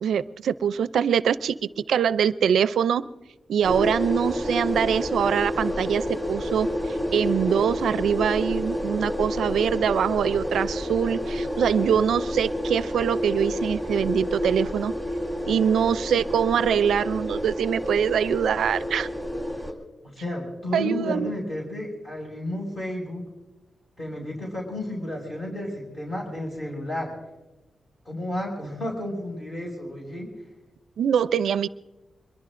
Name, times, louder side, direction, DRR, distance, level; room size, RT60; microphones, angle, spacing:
voice 1, 0.0-1.6 1.9-3.0 3.5-14.9 15.5-19.1 20.7-21.3 31.0-31.7, right 8 dB, 90° right, 15 dB, 0.4 m, -24 dB
sound 1, 3.6-19.7, equal, 10° left, 3.3 m, -29 dB
voice 2, 20.0-23.2 24.0-27.1 28.0-30.3, left 1 dB, 40° left, -2 dB, 6.2 m, -32 dB
24.5 x 22.0 x 2.6 m, 1.1 s
wide cardioid pair, 110°, 0 cm